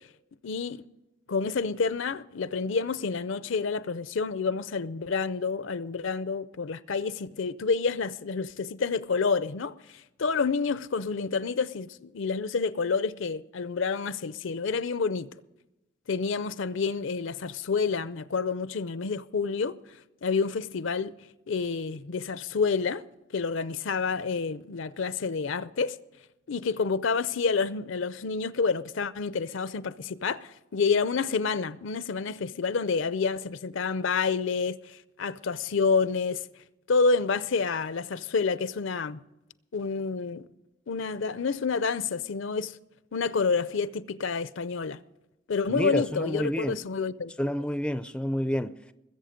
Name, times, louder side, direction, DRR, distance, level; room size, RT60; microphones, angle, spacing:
voice 1, 0.4-0.8 1.3-15.3 16.1-19.8 20.2-21.1 21.5-23.0 23.3-26.0 26.5-36.5 36.9-39.2 39.7-40.5 40.9-42.8 43.1-45.0 45.5-47.3, left 5 dB, 70° left, 0.5 m, -28 dB
voice 2, 45.7-46.9 47.4-48.8, equal, 5° left, 0.4 m, -29 dB
21.0 x 8.0 x 5.1 m
head